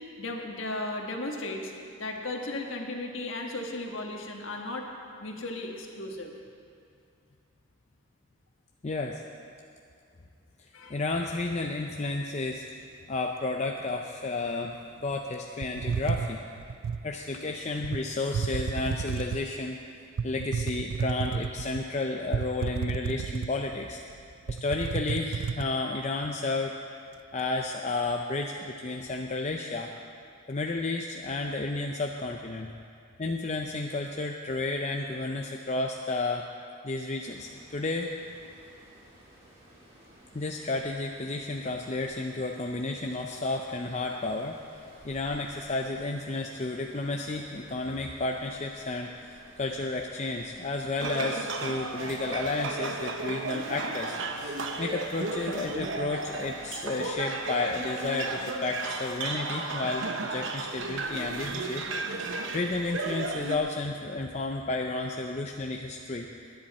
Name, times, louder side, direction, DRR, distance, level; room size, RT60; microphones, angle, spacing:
voice 1, 0.2-1.7 2.0-4.9 5.2-6.3 10.7-10.9, left 2 dB, 60° left, 1 dB, 1.5 m, -35 dB
voice 2, 8.8-9.2 10.6-12.6 13.1-14.7 15.0-16.4 17.0-19.8 20.2-24.0 24.5-26.7 27.3-29.9 30.5-32.7 33.2-36.5 36.8-38.1 40.3-44.6 45.0-62.3 62.5-66.3, left 3 dB, 30° left, 2 dB, 0.5 m, -32 dB
sound 1, 15.6-17.1 17.8-18.0 18.3-19.5 20.2-21.8 22.3-23.8 24.1-24.2 24.5-25.7, right 6 dB, 75° right, 0.4 m, -31 dB
sound 2, 37.2-56.7, right 1 dB, 30° right, 3.5 m, -56 dB
sound 3, 51.0-63.6, right 3 dB, 60° right, 0.9 m, -34 dB
19.5 x 10.5 x 4.3 m, 2.4 s
head